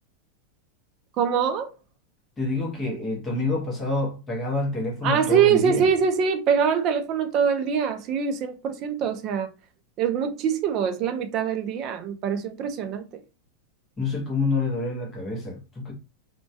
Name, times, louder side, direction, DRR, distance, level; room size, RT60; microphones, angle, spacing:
voice 1, 1.2-1.7 5.0-9.5 10.0-13.1, right 7 dB, 30° right, 0.4 m, -23 dB
voice 2, 2.4-5.9 14.0-15.9, left 3 dB, 15° left, 0.8 m, -27 dB
2.2 x 2.2 x 2.6 m
supercardioid pair, 160°, 0 cm